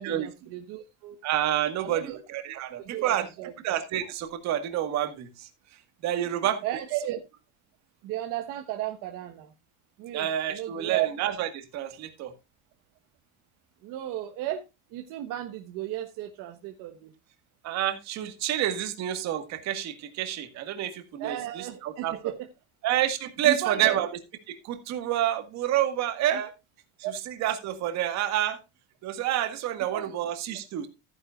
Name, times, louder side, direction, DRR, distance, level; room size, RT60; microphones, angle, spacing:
voice 1, 0.0-1.2 1.8-2.2 2.8-3.5 6.3-7.2 8.0-9.5 10.0-11.1 13.8-14.6 14.9-17.1 21.2-22.4 23.4-24.1 26.3-26.4 27.0-27.1 29.9-30.1, right 13 dB, 65° right, 1.4 m, -34 dB
voice 2, 1.2-3.3 3.6-5.5 6.0-6.6 10.1-12.3 17.6-22.2 22.8-24.1 24.5-26.5 27.4-28.6 29.0-30.9, right 11 dB, 50° right, 1.9 m, -28 dB
14.5 x 9.8 x 2.5 m
cardioid pair, 170°, 34 cm